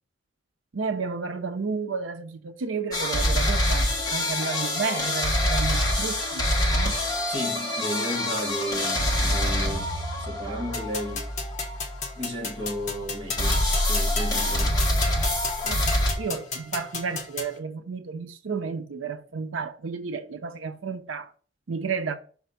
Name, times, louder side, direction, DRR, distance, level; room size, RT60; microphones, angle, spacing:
voice 1, 0.7-6.5 6.7-7.0 15.6-15.8 16.2-21.3 21.7-22.1, right 5 dB, 85° right, 0.6 m, -32 dB
sound 1, 2.9-12.9 13.4-16.1, left 1 dB, 20° left, 1.4 m, -26 dB
voice 2, 7.3-11.3 12.2-14.8, equal, 25° right, 1.9 m, -34 dB
sound 2, 10.7-17.6, left 4 dB, 40° left, 1.1 m, -34 dB
6.0 x 4.3 x 5.6 m
head